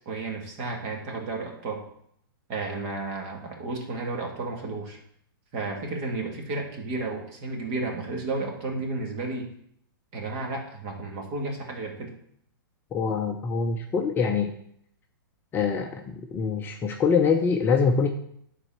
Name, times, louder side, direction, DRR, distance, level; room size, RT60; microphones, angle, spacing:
voice 1, 0.1-1.8 2.5-5.0 5.5-9.5 10.1-12.1, right 3 dB, 35° right, 2 dB, 1.9 m, -32 dB
voice 2, 12.9-14.5 15.5-18.1, left 5 dB, 20° left, 2 dB, 0.6 m, -24 dB
9.9 x 4.1 x 5.8 m, 0.68 s
hypercardioid pair, 145°, 12 cm